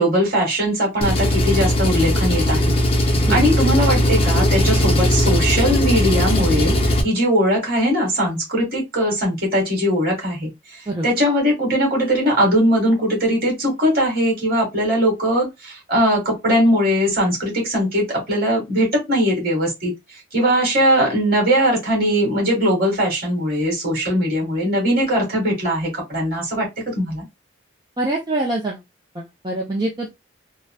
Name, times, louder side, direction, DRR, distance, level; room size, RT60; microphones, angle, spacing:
voice 1, 0.0-2.8 3.3-6.8 7.0-10.5 11.0-19.9 20.3-27.2, equal, 50° right, 1.8 m, -20 dB
Engine, 1.0-7.0, equal, 30° left, 0.6 m, -18 dB
voice 2, 28.0-28.8 29.1-30.1, right 2 dB, 20° right, 0.5 m, -24 dB
3.9 x 2.1 x 2.2 m
head